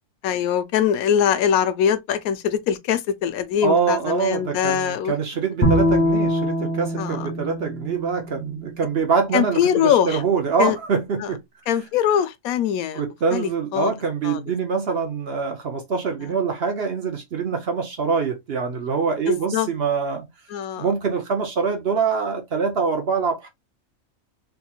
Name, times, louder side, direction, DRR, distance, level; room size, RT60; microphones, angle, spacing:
voice 1, 0.2-5.1 7.0-7.3 9.3-10.2 10.6-10.8 11.2-11.3 11.7-13.0 13.3-13.9 14.2-14.4 19.3-19.7 20.5-20.9, left 9 dB, 80° left, 1.0 m, -22 dB
voice 2, 3.6-11.4 12.9-20.3 20.8-23.5, right 5 dB, 55° right, 0.8 m, -24 dB
Bowed string instrument, 5.6-8.9, equal, 10° left, 0.9 m, -23 dB
3.5 x 2.9 x 2.3 m
omnidirectional pair, 1.5 m